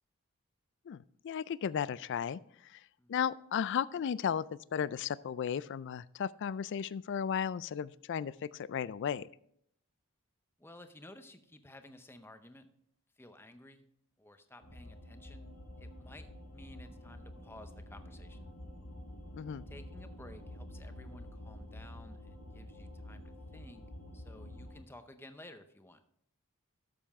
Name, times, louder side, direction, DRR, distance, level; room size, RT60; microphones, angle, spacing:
voice 1, 0.9-9.3 19.3-19.6, left 8 dB, 55° left, 19 dB, 0.3 m, -35 dB
voice 2, 10.6-12.7 13.2-13.9 14.2-15.5 15.8-18.5 19.7-23.8 24.1-26.0, left 1 dB, 10° left, 8 dB, 0.7 m, -54 dB
sound 1, 14.6-24.8, left 1 dB, 85° left, 2.9 m, -48 dB
12.5 x 6.9 x 3.5 m, 0.69 s
head